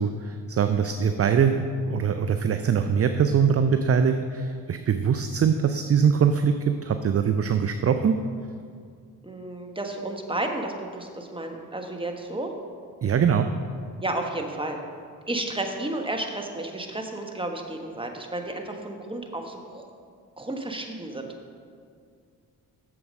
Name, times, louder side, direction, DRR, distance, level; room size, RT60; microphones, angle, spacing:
voice 1, 0.0-8.2 13.0-13.5, right 7 dB, 35° right, 8 dB, 0.5 m, -22 dB
voice 2, 9.2-12.5 14.0-14.8 15.3-19.9 20.4-21.3, right 2 dB, 10° right, 3 dB, 1.3 m, -32 dB
7.9 x 7.0 x 5.3 m, 2.2 s
hypercardioid pair, 45°, 45 cm